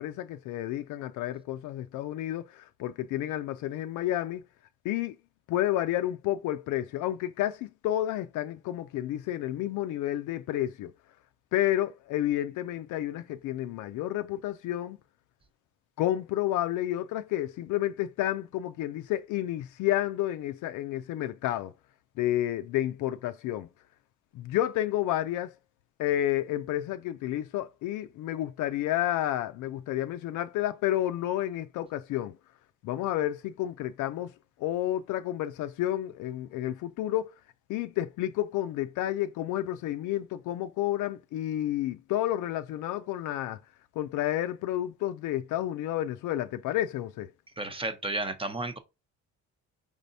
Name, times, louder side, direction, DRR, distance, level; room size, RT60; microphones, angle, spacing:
voice 1, 0.0-4.4 4.8-5.2 5.5-10.9 11.5-15.0 16.0-21.7 22.2-23.7 24.3-25.5 26.0-32.3 32.8-34.3 34.6-37.3 37.7-43.6 44.0-47.3, left 13 dB, 80° left, 0.5 m, -30 dB
voice 2, 47.6-48.8, right 2 dB, 20° right, 0.8 m, -32 dB
5.0 x 3.3 x 2.7 m
cardioid pair, 105°, 30 cm